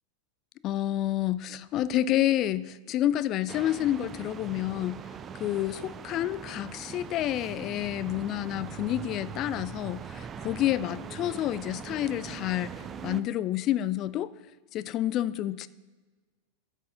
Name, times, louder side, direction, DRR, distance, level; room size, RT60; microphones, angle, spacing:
voice 1, 0.6-5.0 5.4-14.3 14.7-15.7, left 13 dB, 35° left, 0.3 m, -29 dB
sound 1, 3.5-13.2, right 7 dB, 25° right, 0.5 m, -41 dB
13.5 x 6.6 x 3.7 m
figure-of-eight pair, 90°, 0 cm